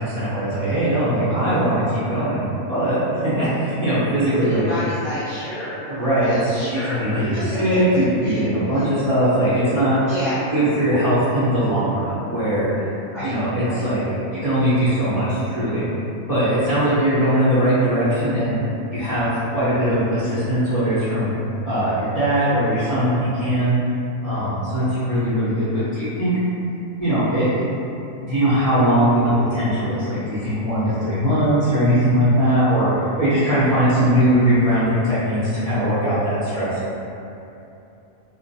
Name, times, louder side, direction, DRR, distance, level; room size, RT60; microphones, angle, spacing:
voice 1, 0.0-4.6 5.9-6.4 6.7-10.0 10.5-12.7 13.2-14.0 14.4-15.8 16.3-18.6 18.9-21.3 21.6-23.8 24.2-26.3 27.0-27.6 28.2-36.8, right 1 dB, 40° right, -15 dB, 0.5 m, -20 dB
voice 2, 4.4-5.8 6.2-7.8 8.2-8.4 8.7-8.9 10.1-10.4 13.1-13.3 13.6-13.8 24.7-24.9, left 1 dB, 45° left, -13 dB, 0.7 m, -30 dB
2.4 x 2.2 x 2.6 m, 2.9 s
omnidirectional pair, 1.4 m